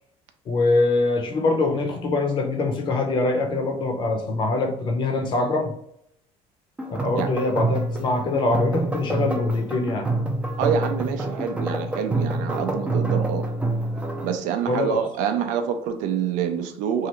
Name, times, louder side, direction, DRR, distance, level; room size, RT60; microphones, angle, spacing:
voice 1, 0.5-5.7 6.9-10.1 14.7-15.0, left 2 dB, 35° left, 3 dB, 0.6 m, -23 dB
sound 1, 6.8-14.4, right 2 dB, 10° right, 0.4 m, -27 dB
voice 2, 10.6-13.5 14.2-17.1, right 7 dB, 75° right, 7 dB, 0.5 m, -26 dB
3.1 x 2.4 x 2.9 m, 0.74 s
cardioid pair, 155°, 13 cm